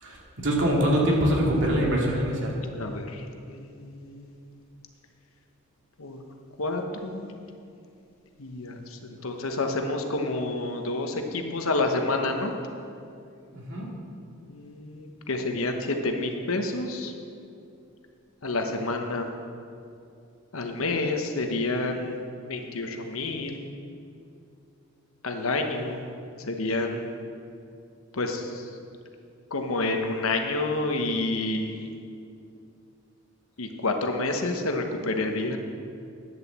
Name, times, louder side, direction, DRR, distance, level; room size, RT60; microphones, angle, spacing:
voice 1, 0.0-2.6 13.5-13.9, equal, 60° right, -2 dB, 2.4 m, -24 dB
voice 2, 2.7-4.4 6.0-6.2 6.6-7.3 8.4-12.6 14.4-17.1 18.4-19.3 20.5-22.2 22.5-23.6 25.2-26.0 26.3-27.0 28.1-28.7 29.5-31.9 33.6-35.6, left 2 dB, 75° left, 4 dB, 1.1 m, -29 dB
10.5 x 7.0 x 7.4 m, 2.5 s
head